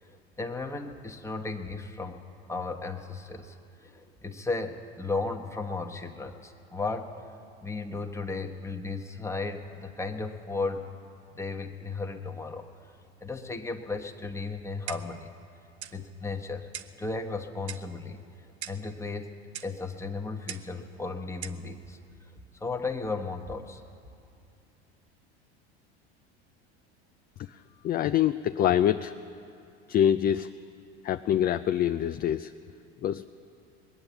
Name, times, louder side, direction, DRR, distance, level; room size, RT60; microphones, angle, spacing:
voice 1, 0.1-2.2 2.5-3.6 3.8-7.1 7.6-10.8 11.3-12.7 13.2-15.3 15.9-16.7 17.0-18.2 18.7-19.4 19.6-22.0 22.6-23.8, left 3 dB, 10° left, 3 dB, 1.2 m, -35 dB
Clock, 14.9-15.2 15.8-16.0 16.7-17.0 17.7-17.9 18.6-18.9 19.5-19.8 20.5-20.7 21.4-21.6, right 10 dB, 85° right, 0.7 m, -40 dB
voice 2, 27.8-29.1 29.9-30.5 31.0-32.5 33.0-33.2, left 10 dB, 30° left, 10 dB, 0.4 m, -25 dB
21.5 x 8.9 x 7.1 m, 2.5 s
hypercardioid pair, 85°, 33 cm